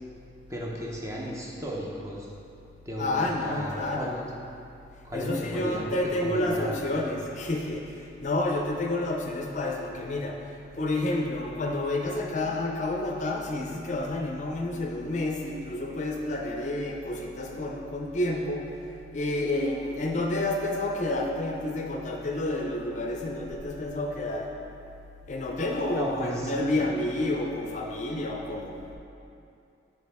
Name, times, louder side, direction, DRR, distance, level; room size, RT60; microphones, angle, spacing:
voice 1, 0.5-2.3 2.9-4.3 5.0-6.8 25.9-26.5 26.8-27.1, equal, 15° right, -3 dB, 0.6 m, -35 dB
voice 2, 3.0-4.1 5.1-10.5 10.7-18.8 19.1-24.5 25.3-28.8, left 2 dB, 40° left, 1 dB, 0.5 m, -29 dB
6.3 x 4.7 x 3.5 m, 2.6 s
head